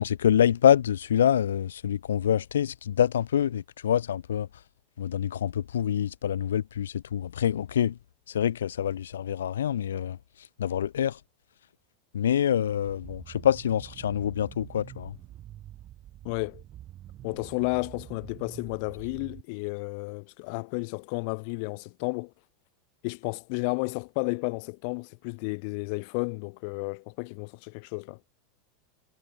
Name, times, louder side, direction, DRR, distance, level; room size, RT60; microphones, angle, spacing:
voice 1, 0.0-4.5 5.0-8.0 8.3-10.2 10.6-11.2 12.1-15.1, left 9 dB, 90° left, 1.6 m, -26 dB
sound 1, 12.8-19.4, right 13 dB, 40° right, 5.3 m, -47 dB
voice 2, 16.2-16.6 17.2-22.3 23.0-28.2, left 35 dB, 60° left, 5.1 m, -32 dB
hypercardioid pair, 105°, 0 cm